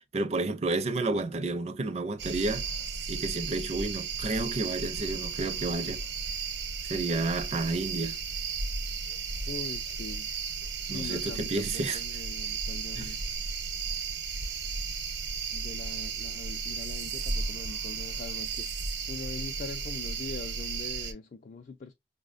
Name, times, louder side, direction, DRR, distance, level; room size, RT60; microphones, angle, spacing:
voice 1, 0.1-2.7 3.1-6.0 6.9-8.2 10.9-12.0 13.0-13.1, right 2 dB, 40° right, 0.5 m, -31 dB
sound 1, 2.2-21.1, right 5 dB, 80° right, 0.9 m, -34 dB
voice 2, 9.5-10.3 10.8-13.3 15.5-18.7 19.1-21.9, left 4 dB, 45° left, 0.4 m, -42 dB
5.4 x 2.1 x 2.4 m
head